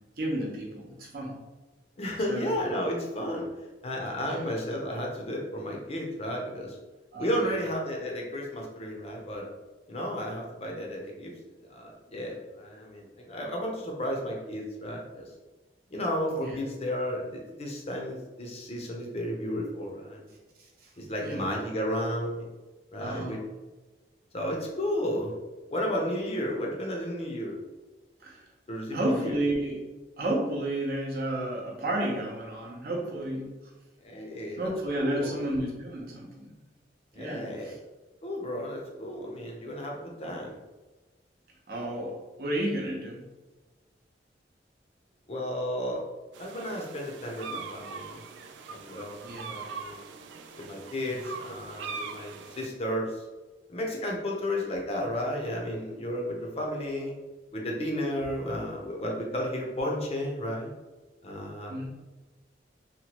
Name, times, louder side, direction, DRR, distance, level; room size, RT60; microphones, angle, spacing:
voice 1, 0.2-1.4 2.3-2.5 4.2-4.4 7.1-7.6 16.4-16.6 21.2-21.4 23.0-23.4 28.2-28.4 28.9-29.8 30.2-33.5 34.6-36.6 37.2-37.8 41.7-43.2 49.2-49.5 51.1-51.2 61.7-61.9, right 1 dB, 55° right, -1 dB, 0.6 m, -32 dB
voice 2, 2.0-6.8 7.2-9.5 9.9-11.3 11.7-15.2 15.9-20.3 21.0-22.5 22.9-23.4 24.3-25.3 25.7-27.6 28.7-29.4 34.0-35.4 37.1-37.8 38.2-40.6 45.3-46.0 46.4-48.2 48.7-50.0 50.6-53.2 53.7-57.1 57.5-60.7 61.2-61.9, equal, 35° left, 0 dB, 0.5 m, -33 dB
sound 1, 46.3-52.7, right 5 dB, 85° right, 0.3 m, -41 dB
2.8 x 2.2 x 2.9 m, 1.2 s
head